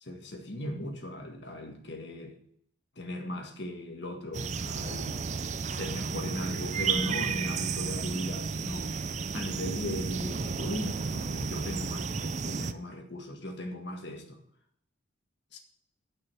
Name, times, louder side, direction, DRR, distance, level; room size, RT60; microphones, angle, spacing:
voice 1, 0.0-2.4 3.0-5.2 5.6-14.4 15.5-15.6, left 1 dB, 60° left, 1.8 m, -38 dB
sound 1, 4.3-12.7, right 5 dB, 35° right, 0.4 m, -32 dB
9.5 x 5.6 x 7.8 m
head